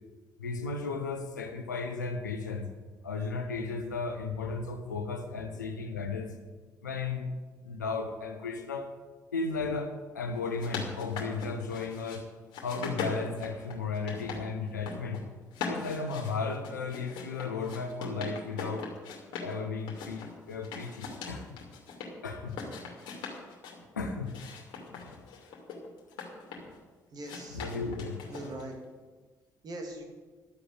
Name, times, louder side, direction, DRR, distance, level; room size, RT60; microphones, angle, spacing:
voice 1, 0.4-2.7 3.0-6.3 6.8-7.3 7.6-8.9 9.3-12.3 12.6-15.2 15.7-18.9 19.4-21.5 22.2-22.6 23.9-24.4 25.0-25.1 27.5-28.2, left 4 dB, 80° left, 5 dB, 1.0 m, -35 dB
sound 1, 10.3-12.2 12.5-14.4 14.7-15.2 15.5-19.5 19.9-22.1 22.5-23.8 24.3-26.8 27.2-28.7, left 5 dB, 60° left, 2.6 m, -40 dB
voice 2, 27.1-27.6 28.3-28.8 29.6-30.0, right 1 dB, 45° right, 3 dB, 2.5 m, -42 dB
12.0 x 7.8 x 8.0 m, 1.4 s
figure-of-eight pair, 45°, 10 cm